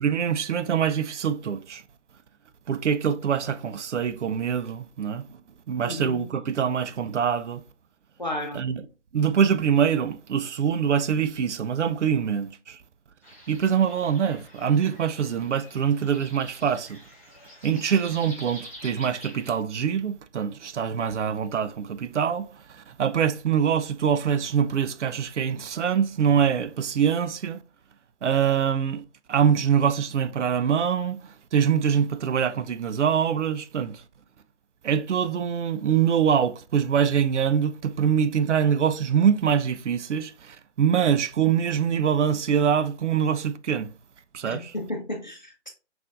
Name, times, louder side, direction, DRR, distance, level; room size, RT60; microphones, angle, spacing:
voice 1, 0.0-1.8 2.7-5.2 5.7-7.6 8.5-8.8 9.1-12.8 13.5-17.0 17.6-27.6 28.2-29.0 29.3-34.0 34.8-43.9 44.3-44.7, right 8 dB, 85° right, 0.5 m, -24 dB
voice 2, 5.8-6.2 8.2-8.6 44.4-45.7, left 1 dB, 40° left, 0.6 m, -33 dB
sound 1, 13.2-19.6, equal, 15° left, 1.1 m, -46 dB
5.9 x 2.5 x 2.5 m
hypercardioid pair, 180°, 35 cm